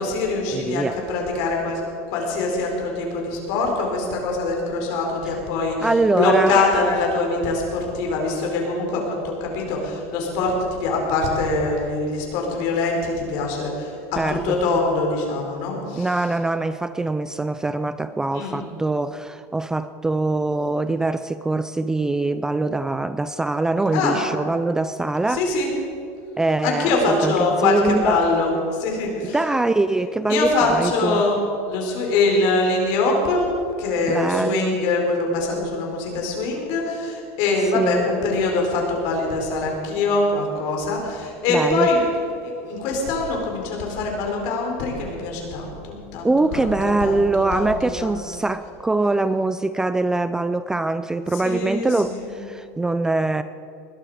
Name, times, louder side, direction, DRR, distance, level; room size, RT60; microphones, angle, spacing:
voice 1, 0.0-1.8 2.1-5.9 6.1-16.1 18.3-18.6 23.9-24.2 25.3-25.7 26.6-29.4 30.3-31.4 31.7-33.4 33.8-42.0 42.4-47.2 47.5-48.1 51.4-52.3, left 3 dB, 60° left, 0 dB, 4.5 m, -23 dB
voice 2, 0.5-1.0 5.8-6.8 14.2-14.6 16.0-25.5 26.4-28.2 29.2-31.2 34.1-34.8 37.7-38.0 41.5-41.9 46.2-53.4, right 2 dB, 10° right, 12 dB, 0.3 m, -23 dB
20.5 x 12.5 x 5.0 m, 2.7 s
supercardioid pair, 150°, 8 cm